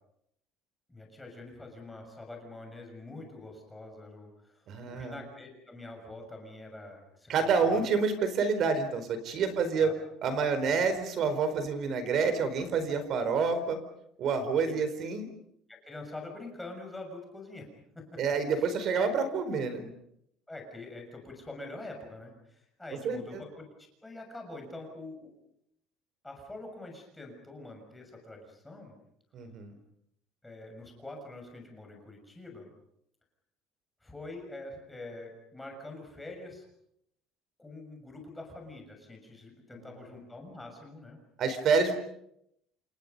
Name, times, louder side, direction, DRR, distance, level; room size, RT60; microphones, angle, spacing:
voice 1, 0.9-7.9 9.5-9.9 13.3-13.4 14.6-14.8 15.7-17.7 17.9-18.2 20.5-23.6 24.0-25.3 26.2-28.9 30.4-32.7 34.0-36.6 37.6-41.2, left 2 dB, 5° left, 2 dB, 6.4 m, -45 dB
voice 2, 4.7-5.2 7.3-9.9 10.2-13.8 14.2-15.3 18.2-19.9 23.0-23.4 29.3-29.7 41.4-41.9, right 5 dB, 40° right, 11 dB, 4.4 m, -28 dB
29.0 x 29.0 x 5.4 m, 0.75 s
cardioid pair, 175°, 0 cm